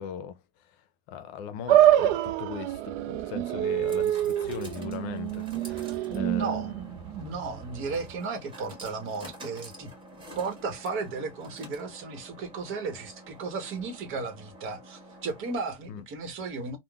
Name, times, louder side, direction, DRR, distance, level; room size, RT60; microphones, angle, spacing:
voice 1, 0.0-6.7 15.9-16.0, left 9 dB, 70° left, 0.6 m, -40 dB
sound 1, 1.7-8.1, right 12 dB, 75° right, 0.5 m, -26 dB
sound 2, 2.2-16.0, equal, 15° right, 1.5 m, -48 dB
voice 2, 6.1-6.7 7.0-9.9 10.4-16.8, right 4 dB, 40° right, 1.0 m, -34 dB
3.6 x 2.2 x 2.3 m
supercardioid pair, 135°, 31 cm